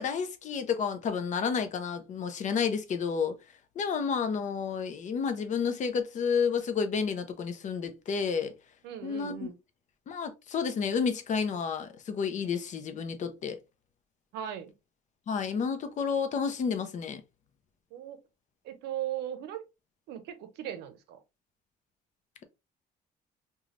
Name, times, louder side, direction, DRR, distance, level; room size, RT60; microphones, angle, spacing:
voice 1, 0.0-3.4 3.8-8.5 9.0-9.5 10.1-13.6 15.3-17.2, left 6 dB, 45° left, 0.6 m, -30 dB
voice 2, 8.8-9.6 14.3-14.7 17.9-18.2 18.6-19.6 20.1-21.2, right 11 dB, 85° right, 0.6 m, -38 dB
3.2 x 2.3 x 2.5 m
cardioid pair, 110°, 17 cm